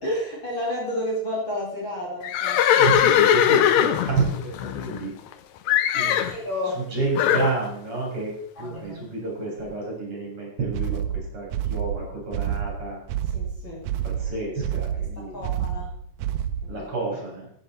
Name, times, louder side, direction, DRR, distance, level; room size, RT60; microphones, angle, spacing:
voice 1, 0.0-2.8 6.0-6.8 8.6-9.0 13.3-13.9 15.3-15.9 16.6-16.9, left 1 dB, 35° left, -4 dB, 3.2 m, -31 dB
Livestock farm animals working animals, 2.2-5.3 5.7-6.4 7.2-7.5, left 10 dB, 80° left, 1.6 m, -20 dB
voice 2, 2.8-5.1 5.9-6.3 6.7-8.3 8.6-13.0 14.0-15.4 16.7-17.5, right 3 dB, 40° right, -2 dB, 4.9 m, -29 dB
sound 1, 10.7-16.8, right 10 dB, 80° right, 1.7 m, -28 dB
11.5 x 9.8 x 4.3 m, 0.68 s
omnidirectional pair, 4.0 m